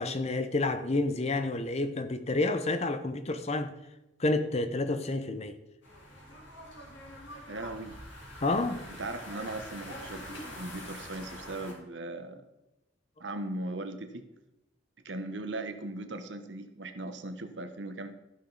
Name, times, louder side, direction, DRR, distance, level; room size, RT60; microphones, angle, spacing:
voice 1, 0.0-3.7 4.2-5.6 8.4-8.8, left 2 dB, 35° left, 0.8 m, -29 dB
sound 1, 5.8-11.7, equal, 85° left, 3.5 m, -45 dB
voice 2, 7.5-8.0 8.9-12.4 13.2-14.2 15.0-18.1, right 2 dB, 75° right, 1.1 m, -38 dB
14.0 x 6.4 x 4.0 m
head